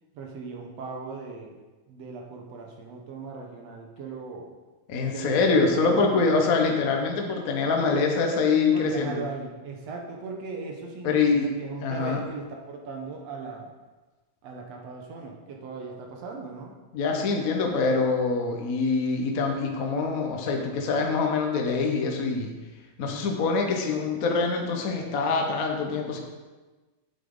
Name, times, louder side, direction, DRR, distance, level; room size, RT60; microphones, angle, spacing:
voice 1, 0.1-1.6 1.9-4.5 5.1-6.3 8.7-13.7 14.4-16.8, right 4 dB, 65° right, 1 dB, 2.1 m, -38 dB
voice 2, 4.9-9.2 11.0-11.5 11.8-12.2 16.9-22.5 23.0-26.2, left 4 dB, 65° left, 2 dB, 0.8 m, -24 dB
8.5 x 8.4 x 3.9 m, 1.2 s
omnidirectional pair, 3.3 m